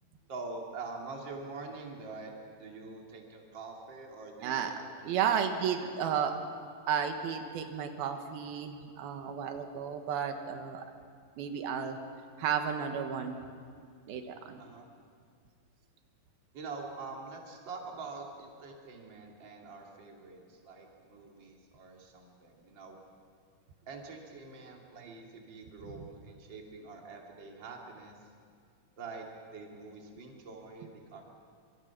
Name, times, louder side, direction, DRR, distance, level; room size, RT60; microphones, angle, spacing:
voice 1, 0.3-2.3 2.6-4.8 5.0-5.4 5.8-6.1 14.6-14.9 16.5-23.0 23.9-28.1 29.0-31.2, right 3 dB, 35° right, 0 dB, 3.0 m, -45 dB
voice 2, 4.4-6.3 6.9-10.8 11.4-12.0 12.4-13.4 14.1-14.6 26.0-26.1, right 7 dB, 85° right, 6 dB, 3.2 m, -33 dB
25.5 x 25.5 x 5.9 m, 2.1 s
omnidirectional pair, 4.2 m